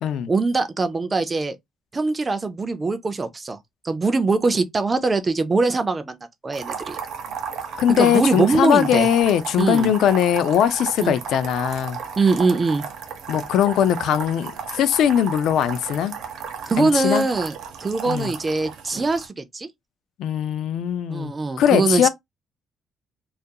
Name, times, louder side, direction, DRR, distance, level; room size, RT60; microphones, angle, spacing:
voice 1, 0.3-1.6 1.9-3.6 3.8-6.2 6.4-7.0 8.0-9.1 9.6-9.9 11.0-11.2 12.2-12.9 16.7-17.5 17.8-19.7 21.1-22.1, right 3 dB, 20° right, 0.3 m, -22 dB
sound 1, 6.5-19.3, right 7 dB, 65° right, 0.6 m, -34 dB
voice 2, 7.8-12.0 13.3-16.1 16.8-17.3 18.1-18.3 20.2-21.3 21.6-22.1, left 9 dB, 70° left, 0.3 m, -20 dB
2.3 x 2.2 x 2.6 m
cardioid pair, 170°, 0 cm